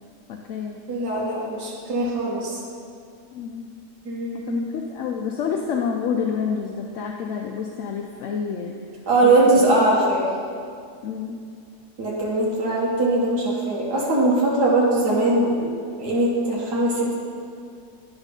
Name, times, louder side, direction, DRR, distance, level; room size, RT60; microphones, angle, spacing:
voice 1, 0.3-0.8 3.3-3.7 4.5-4.6 4.9-8.8 9.2-9.8 11.0-11.4, left 6 dB, 65° left, 1 dB, 0.8 m, -28 dB
voice 2, 0.9-2.6 4.1-4.6 9.1-10.3 12.0-15.7 16.0-17.1, right 2 dB, 90° right, -5 dB, 1.8 m, -21 dB
10.5 x 4.0 x 5.2 m, 2.3 s
omnidirectional pair, 1.7 m